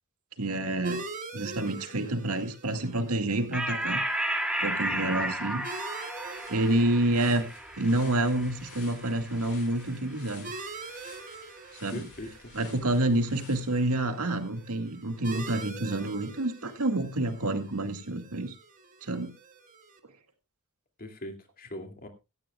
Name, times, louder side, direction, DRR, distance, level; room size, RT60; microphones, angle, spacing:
voice 1, 0.4-1.1 1.3-4.3 4.6-5.6 6.5-7.5 7.8-10.5 11.7-12.1 12.5-18.5 19.0-19.3, right 1 dB, 85° right, 6 dB, 2.1 m, -28 dB
sound 1, 0.8-20.0, right 3 dB, 35° right, 1.8 m, -45 dB
sound 2, 3.5-10.4, right 1 dB, 5° right, 2.5 m, -34 dB
voice 2, 4.8-5.3 11.9-12.5 21.0-22.1, left 1 dB, 40° left, 5 dB, 2.5 m, -42 dB
sound 3, 5.2-5.3 5.6-14.3, left 5 dB, 70° left, 5.3 m, -53 dB
17.0 x 13.5 x 2.3 m, 0.26 s
head